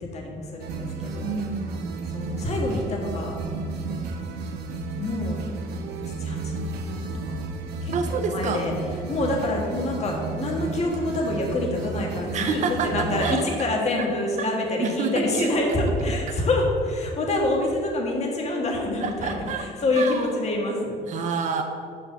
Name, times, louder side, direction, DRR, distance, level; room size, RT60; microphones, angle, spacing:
voice 1, 0.0-1.3 2.1-3.3 5.0-5.4 6.0-6.7 7.3-7.4 7.8-8.7 9.1-21.0, left 2 dB, 40° left, 0 dB, 1.6 m, -26 dB
sound 1, 0.6-13.4, right 3 dB, 85° right, 0.8 m, -32 dB
voice 2, 1.2-2.0 7.9-8.6 12.3-12.9 13.2-13.4 14.4-14.5 14.8-15.5 19.0-19.6 19.9-20.3 21.1-21.6, right 5 dB, 45° right, 3 dB, 0.7 m, -28 dB
5.6 x 5.1 x 6.7 m, 2.3 s
cardioid pair, 110°, 17 cm